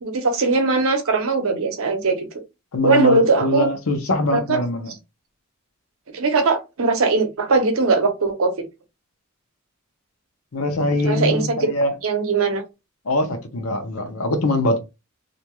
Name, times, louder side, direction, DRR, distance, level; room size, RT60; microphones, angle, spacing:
voice 1, 0.0-2.3 2.8-3.7 4.3-4.6 6.1-8.5 11.1-11.5 12.0-12.6, right 3 dB, 70° right, 0.7 m, -20 dB
voice 2, 2.7-4.9 10.5-11.9 13.0-14.8, left 2 dB, 80° left, 0.7 m, -22 dB
2.5 x 2.2 x 3.0 m
head